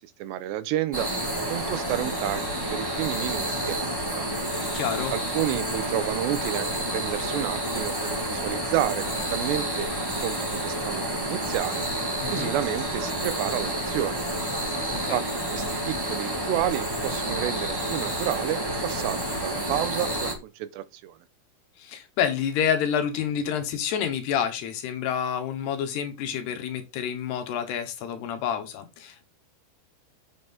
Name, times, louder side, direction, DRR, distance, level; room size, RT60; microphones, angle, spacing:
voice 1, 0.2-1.1 1.5-4.3 5.1-9.9 10.2-11.8 12.3-14.2 15.1-15.2 15.5-21.2, right 12 dB, 85° right, 2.9 m, -30 dB
sound 1, 0.9-20.3, right 1 dB, 10° right, 1.0 m, -29 dB
voice 2, 4.7-5.2 12.2-12.5 14.9-15.2 21.8-29.3, left 8 dB, 70° left, 3.2 m, -28 dB
7.8 x 7.7 x 3.8 m
omnidirectional pair, 5.1 m